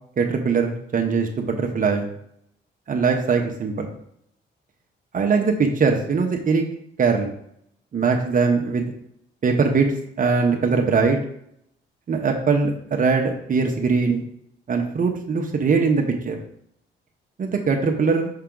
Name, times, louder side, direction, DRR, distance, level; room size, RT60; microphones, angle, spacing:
voice 1, 0.2-2.1 2.9-3.9 5.1-6.6 7.0-7.3 7.9-8.9 9.4-9.9 10.2-11.2 12.1-14.3 14.7-16.4 17.4-18.3, right 5 dB, 45° right, 2 dB, 0.9 m, -21 dB
5.8 x 5.7 x 3.8 m, 0.72 s
cardioid pair, 90°, 20 cm